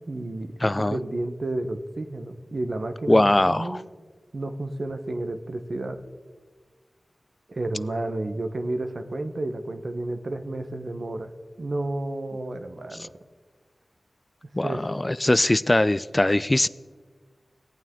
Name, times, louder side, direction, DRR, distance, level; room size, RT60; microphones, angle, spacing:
voice 1, 0.1-3.9 4.3-6.0 7.5-11.3 11.6-13.1 14.6-14.9, right 2 dB, 65° right, 8 dB, 0.9 m, -31 dB
voice 2, 0.6-1.0 3.1-3.8 14.6-16.7, left 1 dB, 30° left, 17 dB, 0.3 m, -21 dB
17.5 x 9.0 x 3.7 m, 1.5 s
cardioid pair, 40°, 0 cm